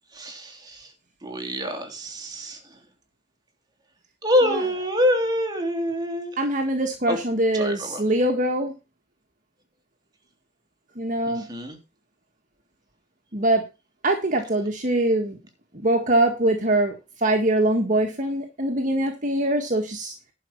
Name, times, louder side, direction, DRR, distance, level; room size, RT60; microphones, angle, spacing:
voice 1, 0.1-0.9 1.2-2.8 4.2-6.4 7.1-7.2 7.5-8.1 11.2-11.8, left 1 dB, 25° right, 3 dB, 3.1 m, -26 dB
voice 2, 6.4-8.7 11.0-11.4 13.3-13.6 14.0-15.4 15.8-17.0 17.2-20.1, right 1 dB, 45° right, 4 dB, 1.7 m, -23 dB
11.5 x 5.4 x 7.0 m, 0.27 s
head